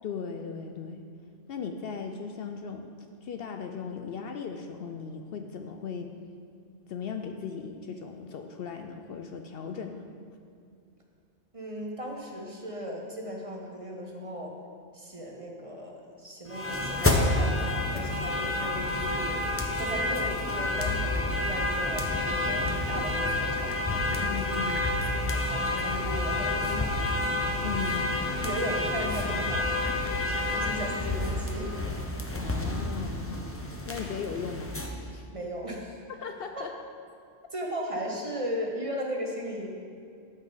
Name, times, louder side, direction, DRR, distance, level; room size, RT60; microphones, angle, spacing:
voice 1, 0.0-1.0 1.5-2.9 3.2-6.1 6.9-10.1 24.2-24.9 27.6-28.0 32.4-33.4 33.8-34.7 34.9-35.3 36.1-36.7, left 6 dB, 65° left, 5 dB, 0.7 m, -37 dB
voice 2, 11.5-14.6 14.9-19.4 19.8-24.3 25.2-27.1 28.4-29.8 30.2-31.7 35.3-36.0 36.6-36.7 37.5-39.7, equal, 30° right, 0 dB, 0.9 m, -36 dB
sound 1, 16.5-34.9, left 2 dB, 15° left, 0.6 m, -29 dB
13.5 x 5.4 x 3.9 m, 2.3 s
omnidirectional pair, 1.2 m